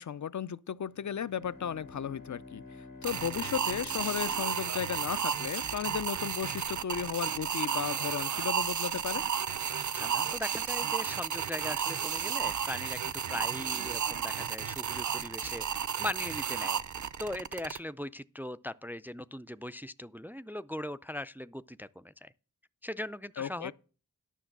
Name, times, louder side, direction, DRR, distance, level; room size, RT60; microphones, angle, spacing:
voice 1, 0.0-9.3 23.4-23.7, left 8 dB, 60° left, 0.5 m, -35 dB
Bowed string instrument, 0.9-5.6, left 3 dB, 85° left, 2.1 m, -50 dB
sound 1, 3.0-17.8, right 7 dB, 65° right, 0.6 m, -33 dB
voice 2, 9.9-16.8 17.2-22.3 22.8-23.7, left 1 dB, 5° right, 0.4 m, -40 dB
10.0 x 6.1 x 6.0 m
cardioid pair, 45°, 32 cm